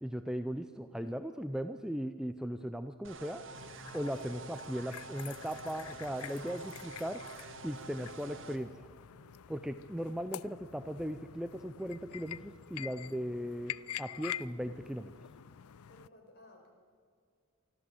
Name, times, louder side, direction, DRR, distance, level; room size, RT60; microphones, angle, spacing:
voice 1, 0.0-3.4 3.9-7.2 7.6-8.7 9.5-15.1, equal, 5° right, 9 dB, 0.5 m, -38 dB
sound 1, 3.0-8.6, right 3 dB, 60° right, 1.8 m, -48 dB
sound 2, 3.5-16.1, left 10 dB, 85° left, 0.5 m, -47 dB
voice 2, 15.9-16.7, left 1 dB, 45° left, 2 dB, 4.9 m, -57 dB
24.5 x 14.0 x 7.9 m, 2.1 s
head